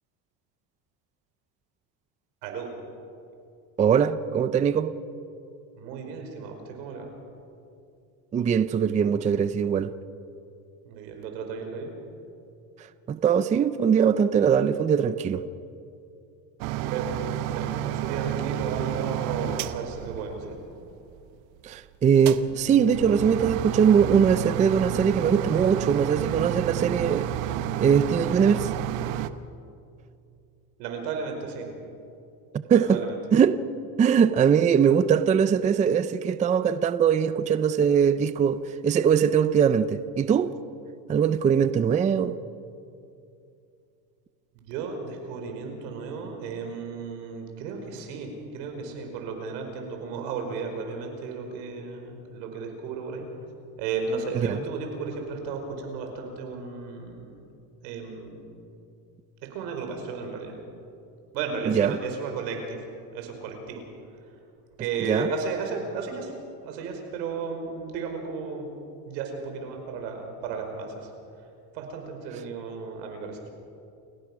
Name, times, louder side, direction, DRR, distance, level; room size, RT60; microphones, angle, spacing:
voice 1, 3.8-4.9 8.3-9.9 13.1-15.4 21.6-27.3 27.8-28.7 32.5-33.0 33.3-33.6 34.0-40.5 41.1-42.4 54.4-54.6 61.7-62.0 65.1-65.3, right 7 dB, 15° right, 0.4 m, -21 dB
voice 2, 5.7-7.1 10.9-11.9 16.9-20.6 30.8-31.7 32.7-33.2 44.6-53.3 53.8-57.3 57.8-58.3 59.5-60.5 61.3-62.8 63.1-63.8 64.8-66.3 66.6-68.7 69.1-71.1 71.7-73.4, right 5 dB, 85° right, 5.2 m, -34 dB
sound 1, 16.6-20.9 22.2-29.3, right 11 dB, 65° right, 1.1 m, -30 dB
29.0 x 16.5 x 6.2 m
supercardioid pair, 130°, 49 cm